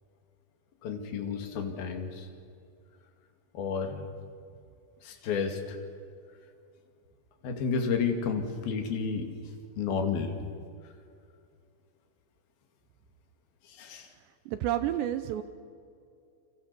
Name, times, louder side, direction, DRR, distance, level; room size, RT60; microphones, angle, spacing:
voice 1, 0.8-2.3 3.5-4.1 5.0-5.8 7.4-10.3 10.8-10.9 13.6-14.1, left 5 dB, 55° left, 5 dB, 3.8 m, -32 dB
voice 2, 14.5-15.4, right 12 dB, 85° right, 11 dB, 2.6 m, -30 dB
29.5 x 25.0 x 6.9 m, 2.4 s
omnidirectional pair, 5.9 m